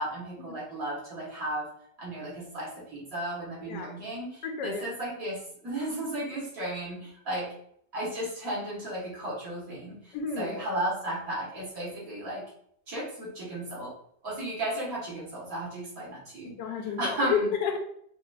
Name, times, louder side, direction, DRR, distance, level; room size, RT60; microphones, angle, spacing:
voice 1, 0.0-1.7 2.0-5.4 5.6-7.5 7.9-12.4 12.9-13.9 14.2-16.5 17.0-17.5, right 1 dB, 55° right, -6 dB, 1.8 m, -34 dB
voice 2, 4.4-4.8 10.1-10.6 16.4-17.8, left 6 dB, 85° left, 3 dB, 1.3 m, -31 dB
5.7 x 2.5 x 2.3 m, 0.67 s
omnidirectional pair, 1.9 m